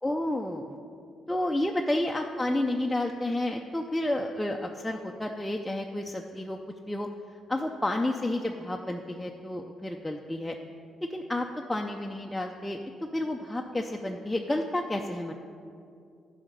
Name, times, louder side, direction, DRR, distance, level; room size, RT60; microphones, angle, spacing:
voice 1, 0.0-0.8 1.3-6.6 6.9-7.1 7.5-10.6 11.1-12.8 13.1-15.4, left 1 dB, 5° left, 1 dB, 0.5 m, -30 dB
11.0 x 5.0 x 6.7 m, 2.4 s
cardioid pair, 90°, 0 cm